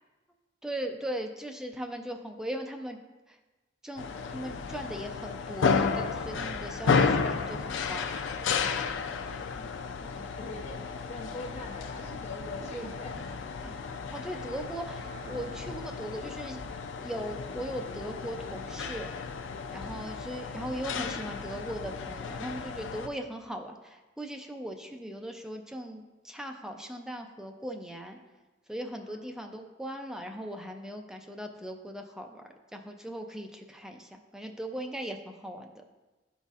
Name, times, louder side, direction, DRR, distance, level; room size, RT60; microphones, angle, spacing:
voice 1, 0.6-3.0 3.3-3.4 3.8-8.1 12.7-12.9 13.6-13.8 14.1-16.6 17.0-19.1 19.7-28.2 28.7-32.4 32.7-35.8, right 1 dB, 5° right, 3 dB, 0.4 m, -39 dB
sound 1, 4.0-23.1, left 5 dB, 80° left, 0.4 m, -33 dB
voice 2, 10.0-13.2 29.0-29.3, left 2 dB, 40° left, -2 dB, 0.7 m, -43 dB
Wind instrument woodwind instrument, 14.9-20.0, right 7 dB, 35° right, 0.9 m, -57 dB
11.5 x 4.1 x 2.4 m, 1.2 s
head